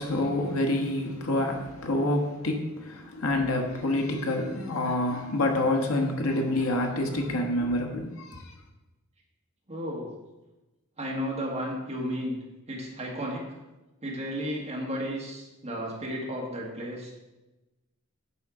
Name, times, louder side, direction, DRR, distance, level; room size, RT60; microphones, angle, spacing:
voice 1, 0.0-8.4, left 1 dB, 85° left, 1.2 m, -27 dB
voice 2, 9.7-10.1 11.0-12.4 12.7-13.4 14.0-17.1, equal, 30° right, 1.6 m, -33 dB
9.0 x 5.6 x 3.7 m
head